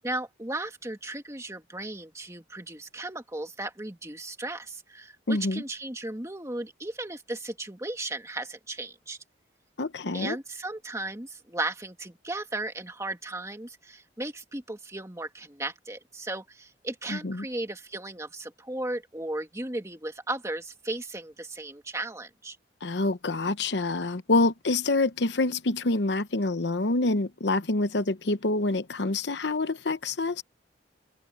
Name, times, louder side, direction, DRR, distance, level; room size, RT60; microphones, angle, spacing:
voice 1, 0.0-9.2 10.1-22.6, right 2 dB, 15° right, 2.2 m, -36 dB
voice 2, 5.3-5.6 9.8-10.4 17.1-17.4 22.8-30.4, left 2 dB, 70° left, 0.9 m, -26 dB
head